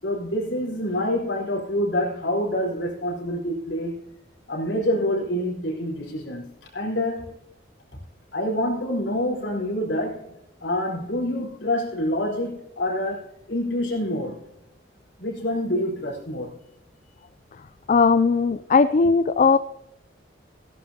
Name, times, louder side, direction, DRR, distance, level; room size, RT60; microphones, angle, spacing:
voice 1, 0.0-4.0 4.5-6.5 6.7-7.3 8.3-10.3 10.6-14.4 15.2-16.5, left 1 dB, 65° left, 4.7 m, -26 dB
voice 2, 17.9-19.6, left 4 dB, 40° left, 0.4 m, -18 dB
18.0 x 11.5 x 2.9 m
head